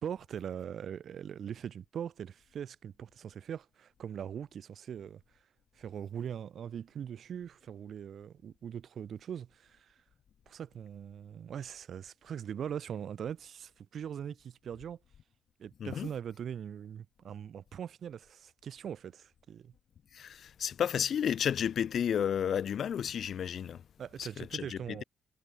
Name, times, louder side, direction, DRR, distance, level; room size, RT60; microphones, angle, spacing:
voice 1, 0.0-5.2 5.8-10.0 10.5-15.0 15.6-19.7 24.0-25.0, right 8 dB, 65° right, 3.1 m, -41 dB
voice 2, 20.1-23.8 24.2-25.0, left 8 dB, 65° left, 1.6 m, -32 dB
cardioid pair, 70°, 0 cm